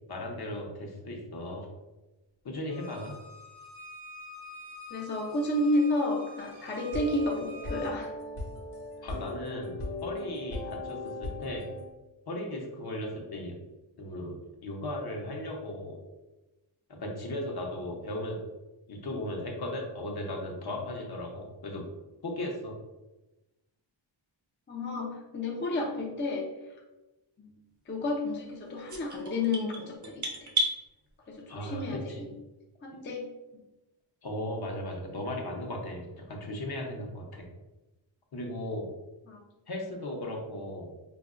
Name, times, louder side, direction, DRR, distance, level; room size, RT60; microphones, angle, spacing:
voice 1, 0.1-1.7 2.4-3.1 9.0-11.7 12.3-13.6 14.0-16.0 16.9-18.4 18.9-21.9 22.2-22.7 31.5-32.2 34.2-37.4 38.3-38.9 39.7-40.9, left 1 dB, 50° left, 0 dB, 0.8 m, -36 dB
Bowed string instrument, 2.7-7.9, left 1 dB, 85° right, 1.0 m, -47 dB
voice 2, 4.9-8.1 24.7-26.5 27.4-27.5 27.9-30.5 31.3-32.3 32.8-33.2 39.3-39.4, left 2 dB, 25° left, -2 dB, 0.5 m, -31 dB
sound 1, 6.8-11.9, left 2 dB, 85° left, 0.9 m, -38 dB
sound 2, 28.9-30.8, right 1 dB, 40° right, 0.7 m, -31 dB
5.0 x 2.1 x 2.4 m, 1.0 s
wide cardioid pair, 95°, 48 cm